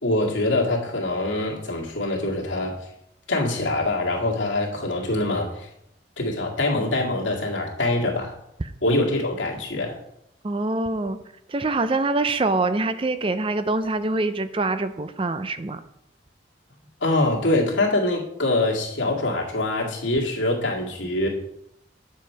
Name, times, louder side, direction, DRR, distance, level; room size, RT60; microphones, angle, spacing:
voice 1, 0.0-2.7 3.3-5.7 6.2-8.4 8.8-10.0 17.0-21.3, left 2 dB, 80° left, -1 dB, 2.1 m, -24 dB
voice 2, 10.4-11.2 11.5-15.8, right 2 dB, 30° right, 12 dB, 0.5 m, -24 dB
8.9 x 7.6 x 4.5 m, 0.80 s
head